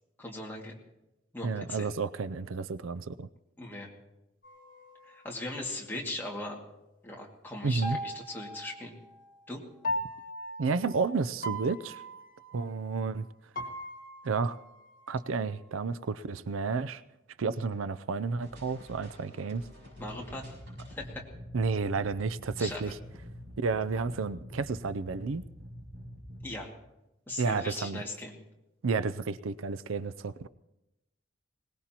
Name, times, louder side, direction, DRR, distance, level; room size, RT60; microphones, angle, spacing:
voice 1, 0.2-0.8 1.3-1.9 3.6-3.9 5.1-6.6 7.0-9.0 9.5-9.6 20.0-20.6 20.9-21.2 22.6-22.8 26.4-26.7 27.3-28.3, left 2 dB, 10° left, -2 dB, 2.1 m, -39 dB
voice 2, 1.4-3.3 7.6-8.0 10.6-12.0 12.5-13.3 14.2-14.6 15.1-17.0 17.4-19.7 21.5-23.0 23.6-25.4 27.4-28.0 28.8-30.5, right 4 dB, 90° right, 15 dB, 0.5 m, -31 dB
sound 1, 4.4-6.1 7.8-9.4 9.8-13.3 13.5-15.7, equal, 45° left, 1.5 m, -40 dB
sound 2, 18.4-26.4, equal, 60° right, 7.8 m, -46 dB
21.5 x 19.0 x 2.9 m, 0.93 s
head